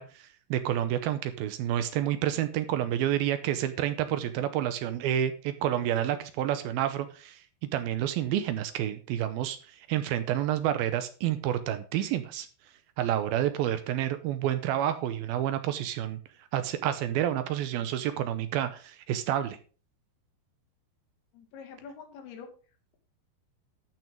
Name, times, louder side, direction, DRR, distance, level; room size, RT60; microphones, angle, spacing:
voice 1, 0.0-7.4 7.7-9.6 9.9-12.5 13.0-16.2 16.5-19.6, right 11 dB, 75° right, 11 dB, 2.4 m, -29 dB
voice 2, 21.3-22.5, left 6 dB, 70° left, 5 dB, 3.7 m, -45 dB
12.0 x 6.1 x 5.3 m, 0.37 s
omnidirectional pair, 4.8 m